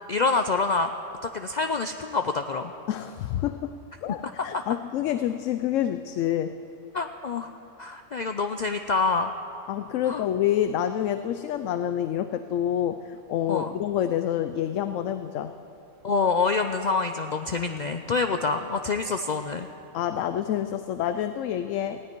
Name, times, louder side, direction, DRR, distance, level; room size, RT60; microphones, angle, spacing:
voice 1, 0.1-0.9 1.2-2.7 4.2-4.6 6.9-7.5 7.8-9.3 10.0-10.2 13.5-13.7 16.0-19.7, left 4 dB, 55° left, 7 dB, 0.5 m, -26 dB
voice 2, 2.9-3.7 4.0-6.6 9.7-15.5 19.9-22.0, left 11 dB, 80° left, 10 dB, 0.9 m, -27 dB
19.0 x 16.0 x 4.5 m, 2.9 s
omnidirectional pair, 1.3 m